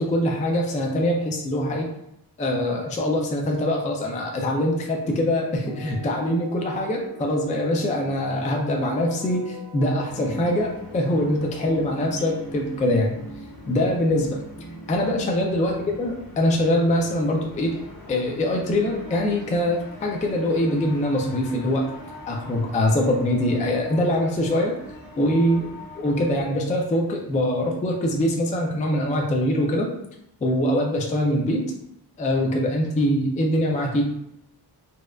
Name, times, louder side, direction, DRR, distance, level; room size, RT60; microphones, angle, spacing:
voice 1, 0.0-1.9 2.4-13.2 13.7-14.4 14.9-17.8 18.1-21.9 22.3-24.8 25.2-25.7 26.0-29.9 30.4-31.6 32.2-34.1, left 1 dB, 20° left, 0 dB, 0.3 m, -23 dB
sound 1, 4.6-15.4, left 1 dB, 55° left, 0.7 m, -41 dB
sound 2, 10.0-26.4, left 1 dB, 80° left, 1.3 m, -43 dB
4.1 x 2.4 x 2.2 m, 0.80 s
wide cardioid pair, 175°, 41 cm